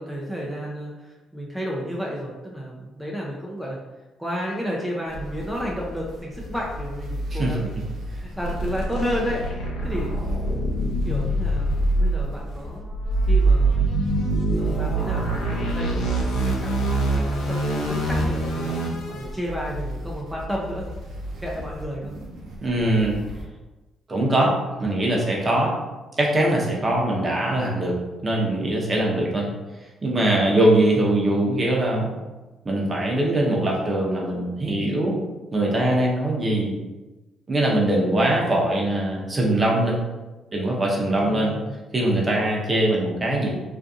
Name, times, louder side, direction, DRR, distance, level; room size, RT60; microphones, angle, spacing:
voice 1, 0.0-3.8 4.2-10.2 10.4-10.7 11.0-12.9 13.3-13.9 14.6-18.8 19.1-20.9 21.4-22.1 30.4-30.6 41.2-41.8, equal, 5° right, -3 dB, 0.5 m, -32 dB
sound 1, 5.0-23.5, equal, 70° right, 0.5 m, -36 dB
sound 2, 8.4-19.2, right 2 dB, 80° left, 0.6 m, -24 dB
voice 2, 22.6-23.1 24.1-25.7 26.2-29.5 30.0-32.1 32.6-35.2 35.5-36.8 37.5-40.0 40.5-41.5 41.9-43.5, right 1 dB, 35° right, -2 dB, 0.8 m, -22 dB
2.6 x 2.4 x 2.4 m, 1.1 s
supercardioid pair, 60°, 0 cm